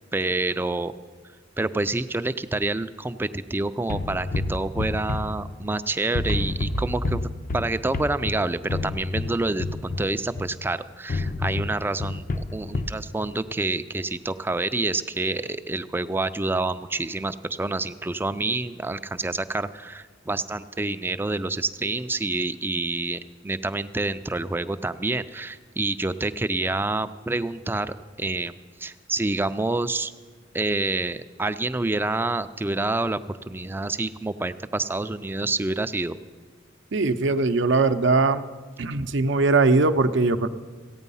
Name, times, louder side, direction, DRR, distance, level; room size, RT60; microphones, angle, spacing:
voice 1, 0.1-0.9 1.6-7.3 7.5-28.5 28.8-30.1 30.5-36.2, right 2 dB, 10° right, 12 dB, 0.3 m, -27 dB
sound 1, 3.9-5.8 6.1-10.6 11.1-13.0, left 2 dB, 45° left, 0.5 m, -29 dB
voice 2, 36.9-38.4 38.8-40.5, right 3 dB, 70° right, 10 dB, 0.6 m, -20 dB
15.5 x 9.0 x 5.5 m, 1.5 s
head